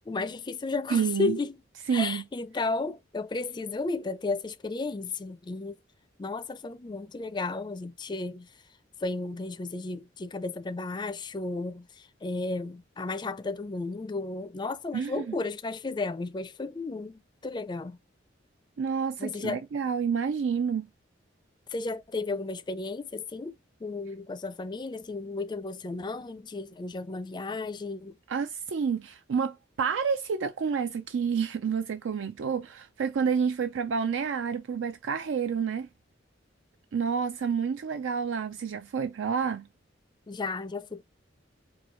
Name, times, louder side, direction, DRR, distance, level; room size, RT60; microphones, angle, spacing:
voice 1, 0.1-1.6 1.9-5.8 6.2-8.5 9.0-18.0 19.2-19.6 21.7-28.2 40.3-41.0, left 3 dB, 25° left, 0.4 m, -33 dB
voice 2, 0.9-1.4 1.9-2.2 14.9-15.2 18.8-20.9 28.3-35.9 36.9-39.7, right 6 dB, 75° right, 0.4 m, -29 dB
4.5 x 2.3 x 3.0 m
head